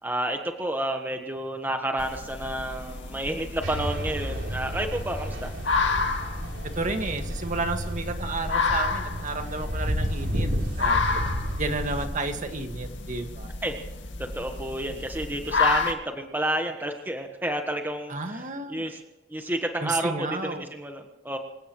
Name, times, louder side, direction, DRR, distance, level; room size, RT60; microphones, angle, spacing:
voice 1, 0.0-5.5 13.6-13.8 14.3-19.0 19.3-21.4, right 1 dB, 10° right, 4 dB, 1.3 m, -30 dB
sound 1, 2.0-15.9, left 4 dB, 85° left, 2.2 m, -31 dB
sound 2, 3.6-12.1, equal, 80° right, 3.7 m, -31 dB
voice 2, 6.6-10.5 10.7-11.2 11.6-13.5 18.1-18.9 19.8-20.7, right 3 dB, 45° right, 5 dB, 1.9 m, -32 dB
26.5 x 17.0 x 3.2 m, 1.0 s
head